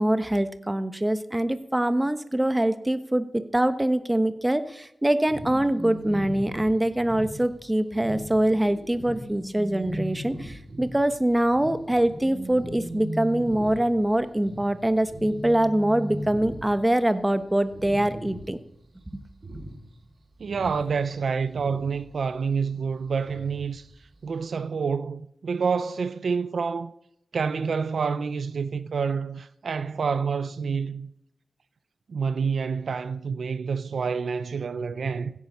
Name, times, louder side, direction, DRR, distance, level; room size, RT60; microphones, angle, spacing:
voice 1, 0.0-18.6, right 1 dB, 15° right, 1.2 m, -24 dB
sound 1, 5.3-17.0 17.3-17.4 17.7-18.7 19.0-20.1 20.4-22.0 23.3-23.7 24.1-24.2, right 1 dB, 60° right, 5.0 m, -38 dB
voice 2, 20.4-23.9 24.2-26.9 27.3-31.1 32.1-35.3, right 5 dB, 75° right, 0.6 m, -28 dB
16.0 x 9.7 x 5.6 m
cardioid pair, 65°, 0 cm